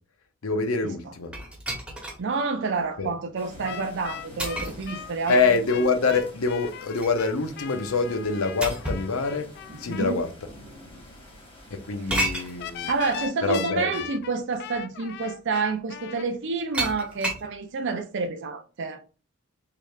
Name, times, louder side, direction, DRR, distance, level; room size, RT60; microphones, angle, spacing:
voice 1, 0.4-1.3 3.0-3.1 5.3-9.5 9.8-10.3 11.7-12.9 13.4-13.9, left 4 dB, 80° left, 0.7 m, -25 dB
sound 1, 1.3-2.2 2.8-2.9 4.4-4.9 6.6-7.2 8.6-9.1 10.1-10.2 12.1-12.5 13.9-14.0 14.5-14.8 16.7-17.5, right 1 dB, 5° right, 0.9 m, -30 dB
voice 2, 2.2-5.4 9.8-10.2 12.9-19.0, right 4 dB, 60° right, 0.5 m, -29 dB
sound 2, 3.4-13.3, left 1 dB, 25° left, 1.3 m, -48 dB
sound 3, 3.6-10.1 12.6-16.3, left 9 dB, 50° left, 0.3 m, -39 dB
4.6 x 3.3 x 2.3 m
head